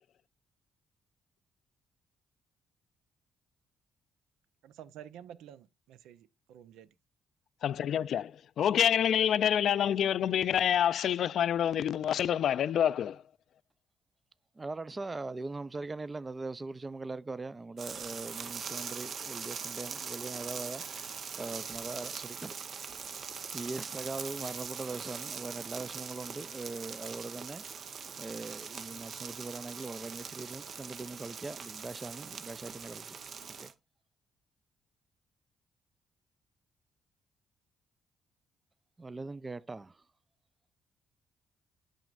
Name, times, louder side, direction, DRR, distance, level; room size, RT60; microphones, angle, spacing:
voice 1, 4.6-6.9, right 10 dB, 90° right, 0.5 m, -50 dB
voice 2, 7.6-13.2, left 9 dB, 65° left, 0.3 m, -27 dB
voice 3, 14.6-20.8 21.4-22.7 23.5-27.6 28.2-33.2 33.6-33.7 39.0-40.0, right 3 dB, 25° right, 0.4 m, -41 dB
sound 1, 17.8-33.7, right 6 dB, 55° right, 0.7 m, -42 dB
9.1 x 6.3 x 2.4 m
cardioid pair, 90°, 0 cm